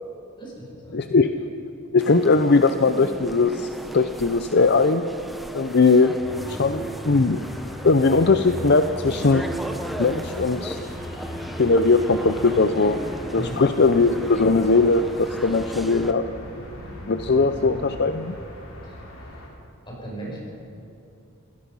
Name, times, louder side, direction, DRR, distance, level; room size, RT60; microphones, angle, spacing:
voice 1, 0.4-1.3 13.3-13.7 17.3-18.2 18.8-19.1 19.9-20.4, right 1 dB, 20° left, -3 dB, 6.4 m, -38 dB
voice 2, 0.9-1.3 1.9-5.1 5.5-6.1 6.5-7.4 7.8-9.5 10.0-10.8 11.6-13.0 13.3-16.2 17.1-18.3, left 3 dB, 50° left, 9 dB, 0.6 m, -19 dB
sound 1, 2.0-16.1, right 1 dB, ahead, 0.9 m, -36 dB
sound 2, 6.2-19.5, left 1 dB, 65° left, 4.1 m, -38 dB
26.5 x 18.0 x 5.6 m, 2.7 s
head